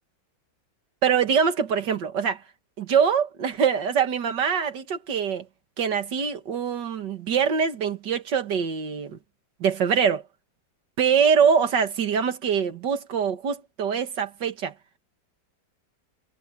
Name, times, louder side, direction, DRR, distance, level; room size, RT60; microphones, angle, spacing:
voice 1, 1.0-2.4 2.8-5.5 5.8-9.2 9.6-10.2 11.0-14.7, right 7 dB, 85° right, 2.3 m, -23 dB
omnidirectional pair, 1.8 m